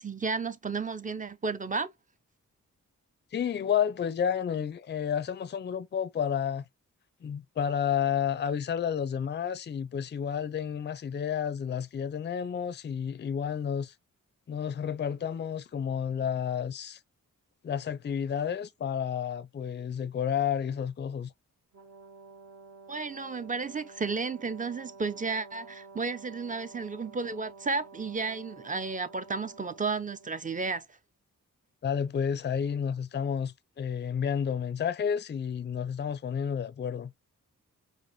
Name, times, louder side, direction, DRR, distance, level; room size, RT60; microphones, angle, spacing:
voice 1, 0.0-1.9 22.9-30.8, right 4 dB, 25° right, 0.5 m, -33 dB
voice 2, 3.3-6.7 7.2-13.9 14.5-17.0 17.6-21.3 31.8-37.1, left 8 dB, 35° left, 0.4 m, -31 dB
Brass instrument, 21.7-30.4, right 4 dB, 50° right, 1.1 m, -51 dB
4.8 x 2.1 x 2.6 m
cardioid pair, 55°, 33 cm